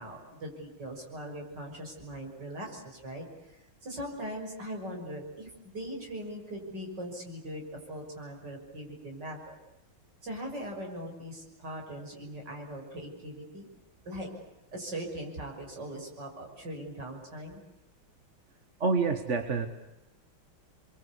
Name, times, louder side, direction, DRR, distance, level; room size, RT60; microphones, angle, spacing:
voice 1, 0.0-9.6 10.2-13.7 14.0-14.3 14.7-17.6, right 1 dB, 50° right, 1 dB, 6.8 m, -40 dB
voice 2, 18.8-19.7, right 4 dB, 35° right, 6 dB, 1.8 m, -27 dB
29.0 x 23.0 x 8.4 m, 0.93 s
omnidirectional pair, 2.3 m